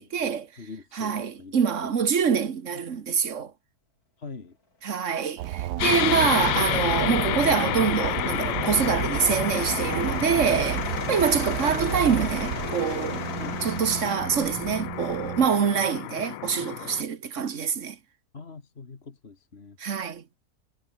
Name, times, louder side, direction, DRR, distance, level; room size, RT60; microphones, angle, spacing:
voice 1, 0.0-0.5 0.9-3.5 4.8-13.3 13.6-18.0 19.8-20.2, right 7 dB, 50° right, 1.7 m, -25 dB
voice 2, 0.6-1.6 4.2-4.6 13.4-13.7 18.3-19.8, left 4 dB, 40° left, 2.0 m, -43 dB
sound 1, 5.1-14.2, left 2 dB, 65° left, 5.8 m, -40 dB
sound 2, 5.4-15.5, right 14 dB, 80° right, 1.2 m, -32 dB
sound 3, 5.8-17.0, left 14 dB, 85° left, 1.3 m, -30 dB
omnidirectional pair, 1.7 m